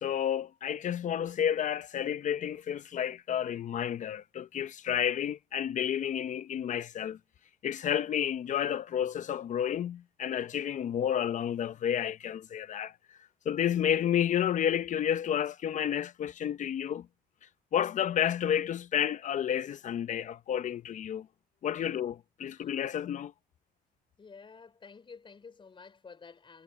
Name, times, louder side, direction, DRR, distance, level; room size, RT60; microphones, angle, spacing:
voice 1, 0.0-7.2 7.6-12.9 13.5-17.1 17.7-21.3 21.6-23.3, left 9 dB, 45° left, 0.7 m, -31 dB
voice 2, 24.2-26.6, left 5 dB, 30° left, 4.7 m, -51 dB
cardioid pair, 110°, 17 cm